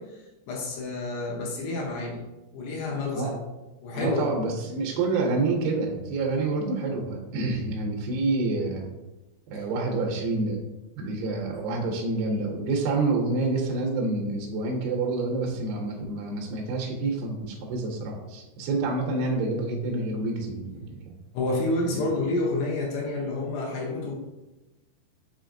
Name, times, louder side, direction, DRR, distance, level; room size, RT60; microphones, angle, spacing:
voice 1, 0.0-2.2 2.5-3.3 3.8-4.3 9.5-9.6 21.3-24.1, left 2 dB, 80° left, -3 dB, 2.8 m, -29 dB
voice 2, 3.9-8.9 9.5-10.6 11.0-21.1, right 3 dB, 80° right, -1 dB, 2.3 m, -28 dB
6.4 x 3.1 x 2.5 m, 1.0 s
omnidirectional pair, 4.9 m